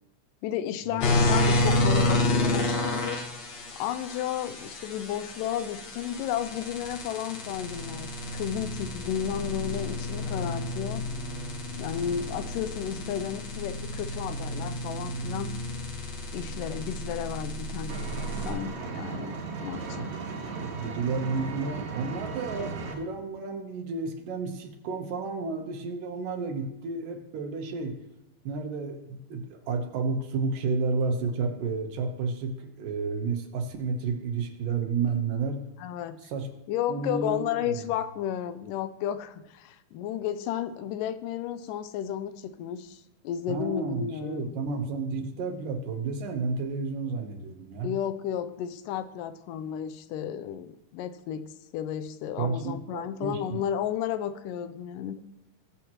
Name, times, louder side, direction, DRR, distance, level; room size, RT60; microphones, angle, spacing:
voice 1, 0.4-3.2 3.8-11.1 11.8-15.5 16.3-18.1 18.5-19.4 19.6-20.1 35.8-36.2 36.7-44.6 47.8-55.2, left 10 dB, 85° left, 13 dB, 2.1 m, -33 dB
sound 1, 1.0-18.5, left 2 dB, 55° left, 2.7 m, -30 dB
Engine, 17.9-22.9, right 4 dB, 65° right, 2.4 m, -36 dB
voice 2, 20.8-28.0 28.4-35.6 36.2-36.5 36.9-37.8 43.5-47.9 52.4-53.6, right 4 dB, 80° right, 5 dB, 2.7 m, -31 dB
20.5 x 7.3 x 3.0 m, 0.92 s
omnidirectional pair, 3.8 m